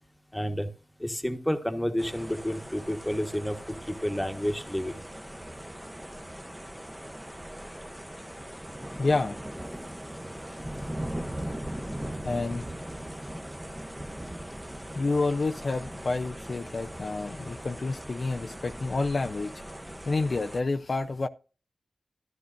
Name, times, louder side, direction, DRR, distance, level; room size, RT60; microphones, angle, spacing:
voice 1, 0.3-0.7 1.0-5.0, equal, 5° left, 1.3 m, -30 dB
sound 1, 2.0-20.6, right 1 dB, 10° right, 0.9 m, -40 dB
voice 2, 9.0-9.4 12.2-12.8 14.9-19.5 20.1-21.3, left 3 dB, 55° left, 0.5 m, -29 dB
13.5 x 11.5 x 2.5 m
wide cardioid pair, 105°, 0 cm